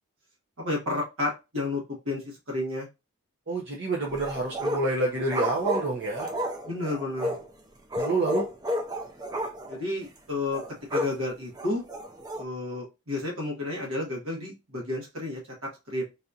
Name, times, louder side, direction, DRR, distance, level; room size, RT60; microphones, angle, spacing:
voice 1, 0.6-2.9 6.6-7.4 9.7-10.6 10.9-11.8 12.4-16.0, left 2 dB, 70° right, -2 dB, 1.3 m, -31 dB
voice 2, 3.5-6.3 7.9-8.4, right 2 dB, 55° right, -3 dB, 0.7 m, -28 dB
sound 1, 4.1-4.9 5.3-7.5 7.9-9.8 10.0-10.1 10.5-11.2 11.6-12.4, equal, 20° right, 0.4 m, -31 dB
4.1 x 2.7 x 2.4 m, 0.26 s
head